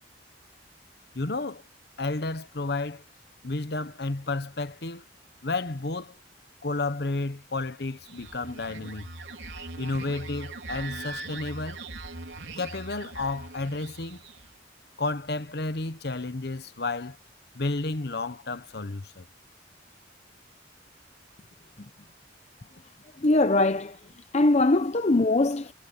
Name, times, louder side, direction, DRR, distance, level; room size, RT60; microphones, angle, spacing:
voice 1, 1.1-1.6 2.0-3.0 3.4-5.0 5.4-6.2 6.6-9.1 9.8-11.8 12.6-14.2 15.0-17.2 17.5-19.3, left 3 dB, 60° left, 1.1 m, -31 dB
sound 1, 7.9-14.5, right 2 dB, 75° right, 4.1 m, -41 dB
voice 2, 23.2-24.0 24.3-25.7, left 2 dB, 35° left, 0.7 m, -22 dB
head